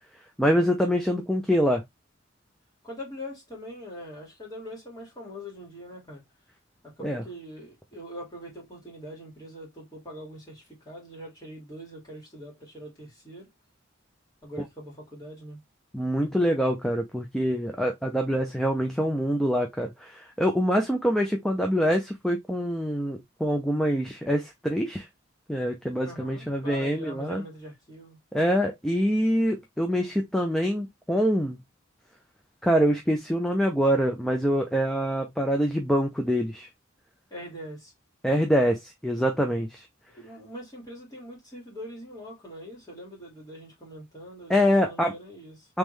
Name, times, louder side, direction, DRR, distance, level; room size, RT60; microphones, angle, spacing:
voice 1, 0.4-1.8 7.0-7.2 15.9-25.1 25.5-27.4 28.3-31.6 32.6-36.7 38.2-39.8 44.5-45.1 45.7-45.8, equal, ahead, 0.5 m, -25 dB
voice 2, 2.8-6.2 6.8-13.5 14.4-15.6 26.0-28.2 37.3-37.9 40.1-44.6 44.8-45.7, equal, 20° left, 2.3 m, -42 dB
3.7 x 3.1 x 3.2 m
head